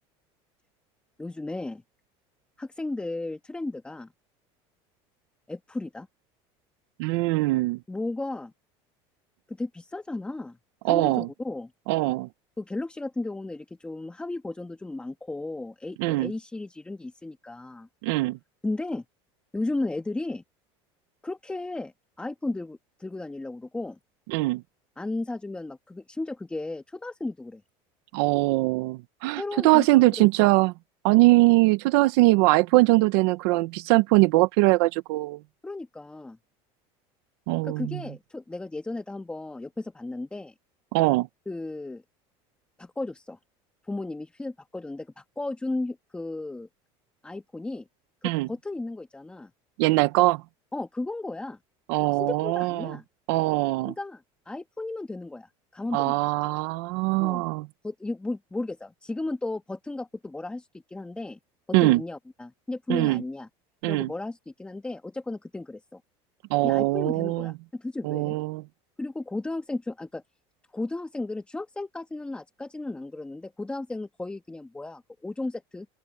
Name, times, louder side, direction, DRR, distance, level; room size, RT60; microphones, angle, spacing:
voice 1, 1.2-1.8 2.6-4.1 5.5-6.1 7.9-8.5 9.5-10.6 10.9-11.7 12.6-17.9 18.6-19.0 19.5-20.4 21.2-21.9 22.2-24.0 25.0-27.6 29.3-30.5 31.3-31.5 35.6-36.4 37.6-40.5 41.5-42.0 42.8-43.4 43.9-46.7 47.2-47.9 48.2-49.5 50.7-51.6 52.1-53.0 53.9-56.3 57.2-57.5 57.8-61.4 61.7-63.5 63.8-66.0 66.6-68.3 69.0-70.2 70.7-75.9, left 2 dB, 10° left, 1.4 m, -34 dB
voice 2, 7.0-7.8 10.8-11.3 11.9-12.3 16.0-16.3 18.0-18.4 24.3-24.6 28.1-30.7 31.0-35.4 37.5-38.0 40.9-41.3 48.2-48.5 49.8-50.4 51.9-52.9 53.3-53.9 55.9-57.7 61.7-62.0 62.9-63.2 63.8-64.1 66.5-67.5 68.0-68.6, right 21 dB, 85° right, 0.8 m, -22 dB
open air
cardioid pair, 140°, 13 cm